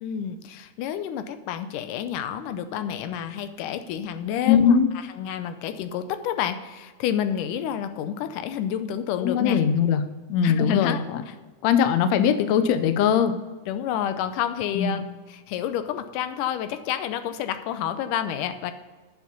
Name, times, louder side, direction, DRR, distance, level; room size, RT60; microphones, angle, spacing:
voice 1, 0.0-4.8 5.2-9.6 10.4-11.4 13.7-18.7, left 9 dB, 90° left, 10 dB, 2.2 m, -29 dB
voice 2, 4.5-4.9 9.2-10.0 10.3-11.2 11.6-13.3 14.8-15.0, left 8 dB, 75° left, 10 dB, 1.8 m, -20 dB
9.3 x 7.1 x 5.4 m, 1.3 s
omnidirectional pair, 3.7 m